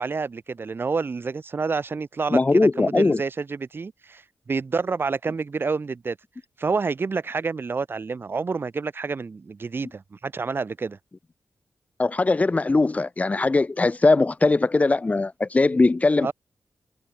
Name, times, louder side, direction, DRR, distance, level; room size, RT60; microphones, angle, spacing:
voice 1, 0.0-6.2 6.6-11.0 16.2-16.3, right 4 dB, 40° right, 2.9 m, -28 dB
voice 2, 2.3-3.2 12.0-16.3, left 3 dB, 25° left, 1.9 m, -20 dB
wide cardioid pair, 150°, 6 cm